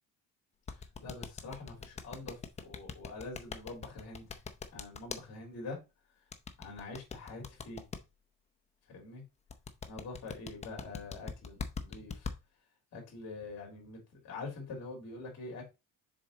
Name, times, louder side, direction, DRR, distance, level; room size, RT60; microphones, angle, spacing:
voice 1, 0.7-4.4 4.7-5.8 6.6-7.8 8.9-9.2 9.9-12.3 12.9-15.6, left 3 dB, 45° left, 3.1 m, -45 dB
sound 1, 0.7-5.2 6.3-8.0 9.5-12.3, left 5 dB, 20° left, 0.5 m, -41 dB
6.8 x 4.1 x 3.9 m
cardioid pair, 155°, 35 cm